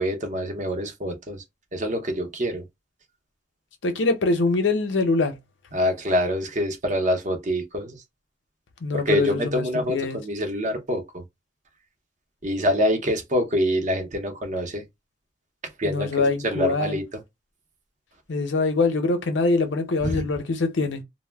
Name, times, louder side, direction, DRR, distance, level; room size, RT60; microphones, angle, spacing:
voice 1, 0.0-1.4 1.7-2.6 5.7-8.0 8.9-11.2 12.4-14.8 15.8-17.2 20.0-20.3, equal, 40° right, 0.6 m, -26 dB
voice 2, 3.8-5.4 8.8-10.2 15.8-17.0 18.3-21.0, left 3 dB, 80° left, 0.6 m, -24 dB
2.2 x 2.0 x 3.3 m
head